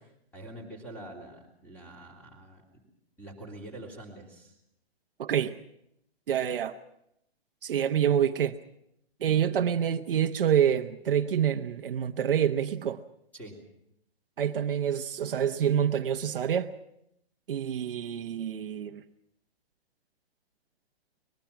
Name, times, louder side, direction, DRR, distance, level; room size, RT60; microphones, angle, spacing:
voice 1, 0.3-2.6 3.2-4.5 13.3-13.5, right 1 dB, 5° left, 3.4 m, -45 dB
voice 2, 5.2-5.6 6.3-6.8 7.6-8.5 9.2-13.0 14.4-16.7 17.5-19.0, right 9 dB, 60° right, 1.0 m, -27 dB
23.0 x 21.0 x 5.9 m
hypercardioid pair, 170°, 32 cm